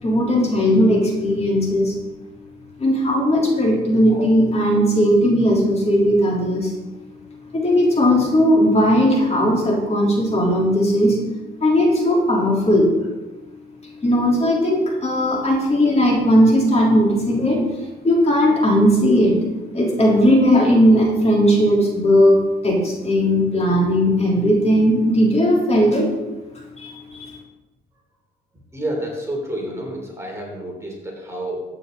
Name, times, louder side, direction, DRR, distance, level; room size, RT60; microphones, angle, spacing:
voice 1, 0.0-1.9 2.8-6.7 7.5-11.2 11.6-12.9 14.0-17.6 18.0-19.4 19.7-22.4 22.6-26.1 26.8-27.3, equal, 35° left, -2 dB, 3.6 m, -17 dB
voice 2, 28.7-31.7, right 1 dB, 15° right, -1 dB, 3.6 m, -29 dB
14.5 x 8.7 x 4.0 m, 1.1 s
cardioid pair, 90°, 20 cm